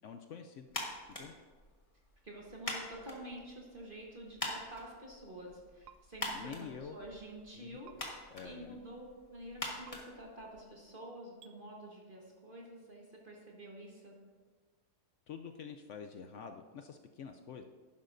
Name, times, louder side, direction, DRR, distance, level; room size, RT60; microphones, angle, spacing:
voice 1, 0.0-0.7 1.2-1.3 6.3-7.0 7.6-7.8 8.3-8.8 15.3-17.6, left 6 dB, 70° left, 6 dB, 0.7 m, -47 dB
sound 1, 0.7-10.9, left 1 dB, 20° left, 1.3 m, -45 dB
voice 2, 2.2-14.2, right 1 dB, 35° right, -2 dB, 1.3 m, -49 dB
sound 2, 5.8-6.0 7.8-8.0 9.8-10.0 11.4-11.5, right 9 dB, 80° right, 1.1 m, -55 dB
11.5 x 10.5 x 2.6 m, 1.4 s
omnidirectional pair, 1.7 m